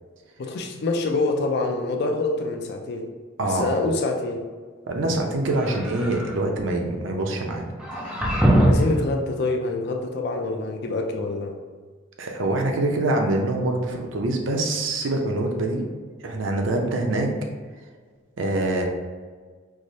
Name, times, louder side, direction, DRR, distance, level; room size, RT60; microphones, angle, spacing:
voice 1, 0.4-3.1 3.4-4.4 8.5-11.6, left 2 dB, 55° left, 3 dB, 0.4 m, -26 dB
voice 2, 3.4-3.7 4.9-7.7 8.0-8.2 12.2-15.8 16.2-17.3 18.4-18.8, right 2 dB, 75° right, 2 dB, 0.5 m, -25 dB
sound 1, 5.5-6.4 7.8-9.0, right 1 dB, 5° right, 0.4 m, -21 dB
4.6 x 2.0 x 2.6 m, 1.5 s
head